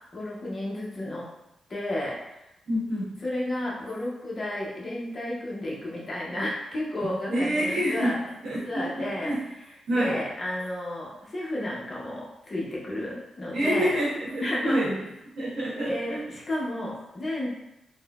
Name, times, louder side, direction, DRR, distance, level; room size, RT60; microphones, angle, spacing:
voice 1, 0.1-1.3 1.7-2.5 3.2-8.3 8.6-13.9 14.4-14.9 15.8-17.5, left 1 dB, 30° left, -4 dB, 0.6 m, -32 dB
voice 2, 2.7-3.1 7.3-8.1 8.4-8.9 9.2-9.4 9.9-10.2 13.5-14.9 15.4-16.2, equal, 85° right, -6 dB, 1.1 m, -27 dB
3.7 x 2.0 x 2.3 m, 0.88 s
wide cardioid pair, 165°, 0 cm